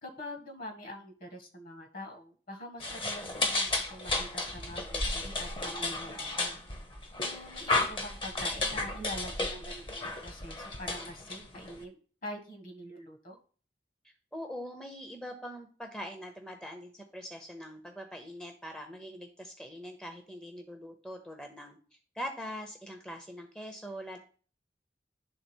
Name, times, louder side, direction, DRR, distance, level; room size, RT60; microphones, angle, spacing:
voice 1, 0.0-6.6 7.2-13.4, left 1 dB, 50° left, 4 dB, 1.7 m, -44 dB
sound 1, 2.8-11.8, left 2 dB, 30° left, 1.0 m, -33 dB
voice 2, 14.0-24.2, equal, 5° left, 4 dB, 0.8 m, -43 dB
10.5 x 3.7 x 4.5 m, 0.41 s
head